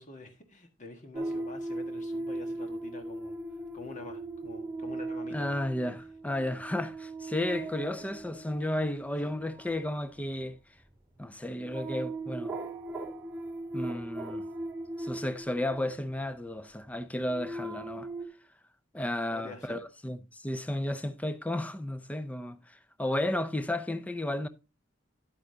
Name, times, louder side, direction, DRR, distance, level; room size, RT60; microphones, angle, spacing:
voice 1, 0.0-3.4 3.7-5.6 6.0-6.1 8.0-8.1 9.2-9.3 19.3-19.8, left 3 dB, 40° left, 1.6 m, -47 dB
sound 1, 1.1-16.3 16.9-18.3, right 2 dB, 10° right, 2.2 m, -39 dB
voice 2, 5.3-6.0 6.2-10.6 11.2-12.5 13.7-14.5 15.0-18.1 18.9-22.6 23.0-24.5, left 1 dB, 5° left, 0.5 m, -33 dB
10.5 x 8.3 x 2.8 m
head